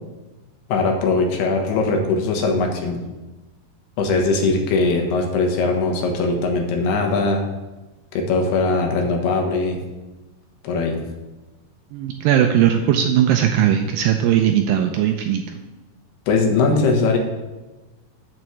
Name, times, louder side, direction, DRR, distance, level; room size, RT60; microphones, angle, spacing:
voice 1, 0.7-3.0 4.0-7.4 8.1-9.8 10.6-11.0 16.3-17.2, left 3 dB, 85° left, 2 dB, 3.3 m, -20 dB
voice 2, 11.9-15.6, right 10 dB, 85° right, 5 dB, 2.1 m, -18 dB
13.5 x 7.0 x 3.2 m, 1.1 s
omnidirectional pair, 4.5 m